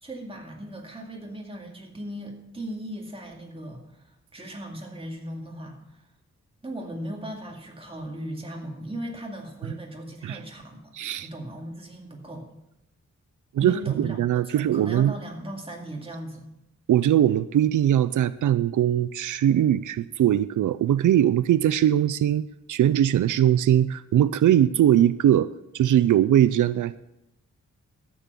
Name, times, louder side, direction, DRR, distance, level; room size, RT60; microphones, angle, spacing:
voice 1, 0.0-6.0 6.6-10.9 11.2-12.5 13.6-14.2 14.4-16.5, right 1 dB, 20° right, 0 dB, 2.3 m, -37 dB
voice 2, 10.9-11.3 13.5-15.1 16.9-22.4 22.7-27.0, right 11 dB, 90° right, 16 dB, 0.5 m, -21 dB
13.5 x 7.5 x 6.8 m, 0.88 s
wide cardioid pair, 130°, 30 cm